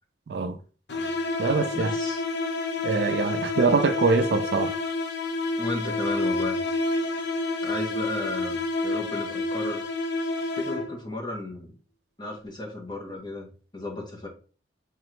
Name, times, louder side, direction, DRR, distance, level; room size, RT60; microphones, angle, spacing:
voice 1, 0.3-0.6 1.4-1.9 2.8-4.8, right 4 dB, 60° right, 0.4 m, -24 dB
sound 1, 0.9-11.1, left 2 dB, 65° left, 0.6 m, -29 dB
voice 2, 1.7-2.2 5.6-6.6 7.6-8.6 8.8-9.8 10.6-11.8 12.2-14.3, left 2 dB, 25° left, 0.9 m, -34 dB
3.7 x 3.1 x 3.1 m
head